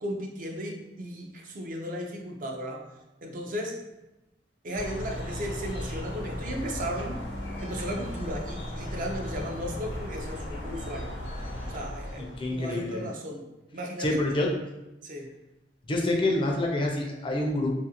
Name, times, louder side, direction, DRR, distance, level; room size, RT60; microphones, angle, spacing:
voice 1, 0.0-2.9 3.2-3.8 4.6-7.2 7.6-11.1 11.7-13.4 13.7-14.2 15.0-15.3, equal, 50° right, 1 dB, 0.4 m, -35 dB
sound 1, 4.7-12.8, left 1 dB, 85° left, 0.6 m, -36 dB
voice 2, 12.2-13.0 14.0-14.5 15.9-17.7, left 2 dB, 30° left, 0 dB, 0.4 m, -27 dB
2.5 x 2.4 x 2.8 m, 0.97 s
head